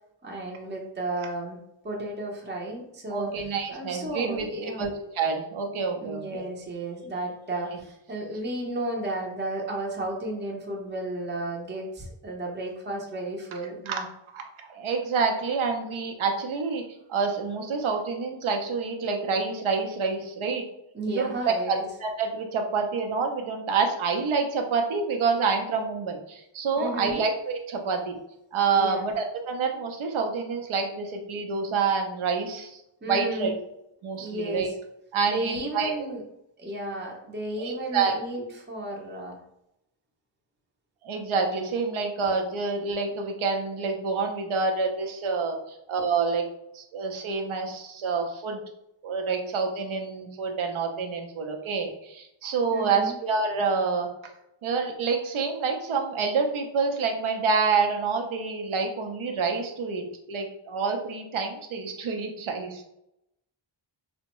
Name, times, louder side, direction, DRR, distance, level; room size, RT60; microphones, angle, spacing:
voice 1, 0.2-1.6 1.8-3.3 3.7-4.9 6.0-14.0 20.9-21.8 26.8-27.2 28.7-29.1 33.0-33.5 34.2-34.7 35.3-36.2 36.6-39.4 52.7-53.2, right 1 dB, 25° right, -1 dB, 0.6 m, -33 dB
voice 2, 3.1-6.5 7.7-7.8 13.9-14.0 14.3-14.4 14.7-16.8 17.1-20.6 21.1-28.2 28.5-32.8 33.1-33.5 34.0-34.7 35.1-36.1 37.6-38.5 41.0-46.5 46.7-48.6 49.0-54.1 54.6-62.9, right 4 dB, 80° right, 3 dB, 0.7 m, -27 dB
3.4 x 2.1 x 2.9 m, 0.83 s
wide cardioid pair, 90°, 48 cm